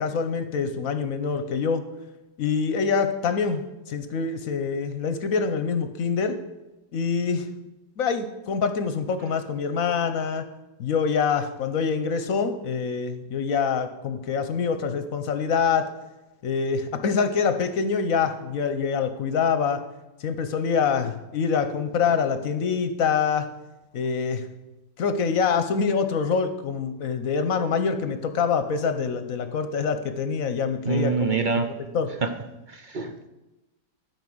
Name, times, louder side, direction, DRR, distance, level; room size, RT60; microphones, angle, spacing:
voice 1, 0.0-1.8 2.4-3.6 3.9-6.4 6.9-7.5 8.0-10.4 10.8-15.9 16.4-19.8 20.2-23.5 23.9-24.5 25.0-31.4 31.9-32.1, left 6 dB, 60° left, 9 dB, 1.1 m, -25 dB
voice 2, 30.8-31.7 32.2-32.3 32.8-33.3, right 5 dB, 55° right, 7 dB, 0.5 m, -25 dB
12.5 x 5.0 x 7.7 m, 1.0 s
omnidirectional pair, 1.7 m